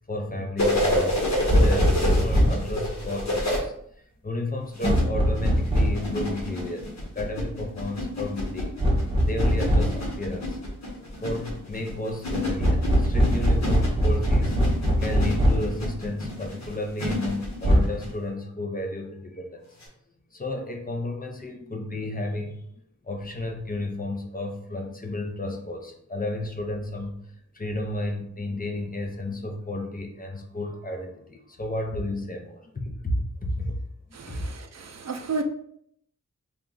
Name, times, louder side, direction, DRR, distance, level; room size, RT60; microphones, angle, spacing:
voice 1, 0.1-3.7 4.2-8.7 9.3-10.6 10.9-14.7 15.0-19.6 20.3-22.6 23.0-27.2 27.5-33.8 34.3-34.4, left 1 dB, 30° left, 2 dB, 0.5 m, -32 dB
sound 1, 0.6-3.6 4.7-18.1 19.8-19.9, left 1 dB, 60° left, 1.0 m, -29 dB
sound 2, 1.5-2.7 4.9-6.1 8.8-10.0 12.6-15.8 17.6-17.8, equal, 15° right, 0.7 m, -21 dB
voice 2, 34.1-35.4, right 4 dB, 60° right, 5 dB, 0.4 m, -32 dB
3.1 x 2.3 x 3.7 m, 0.69 s
wide cardioid pair, 90°, 31 cm